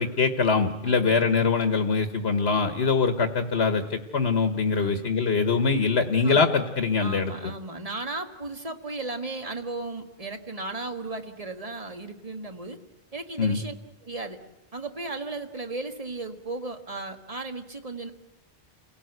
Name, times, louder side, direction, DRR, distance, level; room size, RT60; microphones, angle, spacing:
voice 1, 0.0-7.3 13.4-13.6, left 4 dB, 70° left, 7 dB, 1.5 m, -23 dB
voice 2, 0.8-1.2 4.7-5.1 6.2-6.5 7.0-12.8 13.1-13.7 14.0-14.4 14.7-18.1, right 2 dB, 35° right, 5 dB, 1.5 m, -35 dB
28.5 x 17.5 x 8.0 m, 1.0 s
omnidirectional pair, 1.1 m